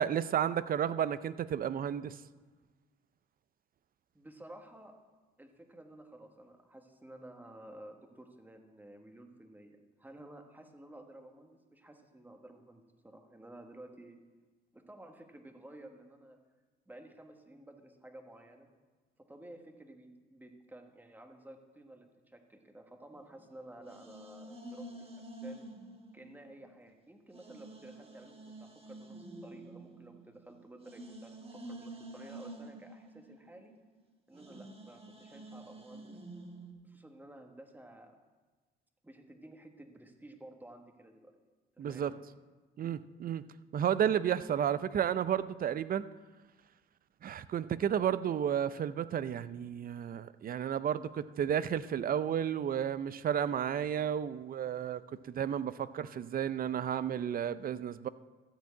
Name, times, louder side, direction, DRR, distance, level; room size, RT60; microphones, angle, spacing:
voice 1, 0.0-2.2 41.8-42.1 42.8-43.5 43.7-46.0 47.2-58.1, right 9 dB, 45° right, 16 dB, 0.5 m, -32 dB
voice 2, 4.1-4.9 5.4-14.2 14.7-16.4 16.9-18.7 19.2-25.7 26.1-33.7 34.3-36.2 36.8-38.1 39.0-41.4 41.8-42.2, right 1 dB, 10° right, 4 dB, 1.3 m, -53 dB
sound 1, 23.1-26.9 27.3-36.7, right 2 dB, 30° right, 1.4 m, -49 dB
13.5 x 4.6 x 8.3 m, 1.3 s
cardioid pair, 90°, 20 cm